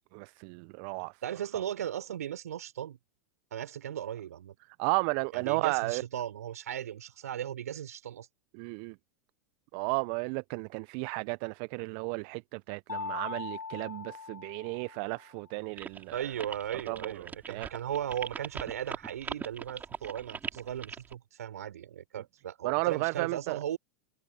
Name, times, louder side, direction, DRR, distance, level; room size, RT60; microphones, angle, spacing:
voice 1, 0.1-1.2 4.6-6.0 8.5-9.0 9.7-16.3 16.7-17.7 22.6-23.6, right 33 dB, 50° right, 0.8 m, -33 dB
voice 2, 1.2-3.0 3.5-4.6 5.3-8.3 16.1-23.8, right 10 dB, 75° right, 6.1 m, -37 dB
Mallet percussion, 12.9-15.4, left 5 dB, 85° left, 1.1 m, -40 dB
sound 1, 15.8-21.1, right 6 dB, 20° right, 4.8 m, -40 dB
figure-of-eight pair, 90°, 9 cm